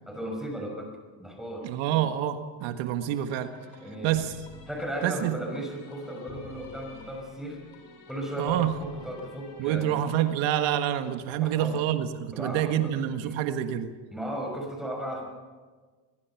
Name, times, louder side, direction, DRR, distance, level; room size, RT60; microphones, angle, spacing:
voice 1, 0.1-0.9 1.2-2.0 3.8-4.2 4.7-7.6 8.1-10.0 11.3-11.8 12.3-12.9 13.2-13.4 14.1-15.3, right 1 dB, ahead, 1 dB, 5.9 m, -36 dB
voice 2, 1.6-3.5 4.0-4.4 5.0-5.4 8.4-8.7 9.6-13.9, right 11 dB, 80° right, 8 dB, 1.7 m, -27 dB
sound 1, 3.1-10.3, left 4 dB, 75° left, 7.5 m, -49 dB
24.0 x 21.0 x 5.9 m, 1.4 s
supercardioid pair, 100°, 45 cm